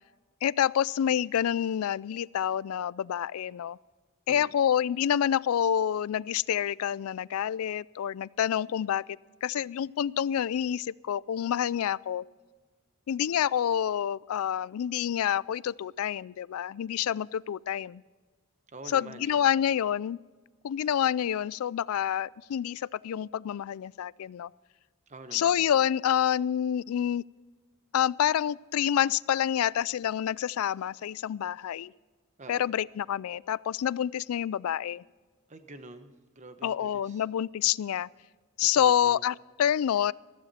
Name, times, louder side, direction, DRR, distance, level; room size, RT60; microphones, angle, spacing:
voice 1, 0.4-3.8 4.3-12.2 13.1-18.0 18.9-20.2 20.6-24.5 25.3-27.2 27.9-31.9 32.5-35.0 36.6-38.1 38.6-40.1, left 9 dB, 80° left, 22 dB, 0.3 m, -28 dB
voice 2, 18.7-19.4 25.1-25.6 32.4-32.7 35.5-37.2 38.6-39.2, right 2 dB, 35° right, 9 dB, 1.1 m, -46 dB
15.0 x 15.0 x 4.3 m, 1.4 s
head